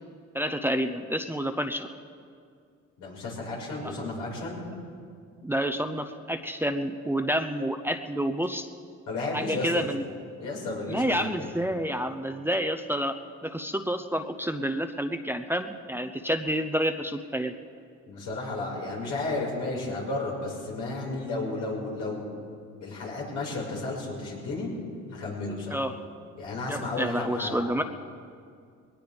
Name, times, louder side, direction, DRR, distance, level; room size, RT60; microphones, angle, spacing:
voice 1, 0.3-1.9 3.8-3.9 5.4-8.7 9.3-10.0 10.9-13.2 13.4-17.5 25.7-26.0 26.7-27.8, equal, 5° right, 6 dB, 0.7 m, -29 dB
voice 2, 3.0-4.6 9.1-9.9 10.4-11.5 18.1-22.3 22.8-24.7 25.1-25.8 26.4-27.7, left 2 dB, 85° left, -4 dB, 5.5 m, -33 dB
21.5 x 18.5 x 3.5 m, 2.2 s
cardioid pair, 90°, 30 cm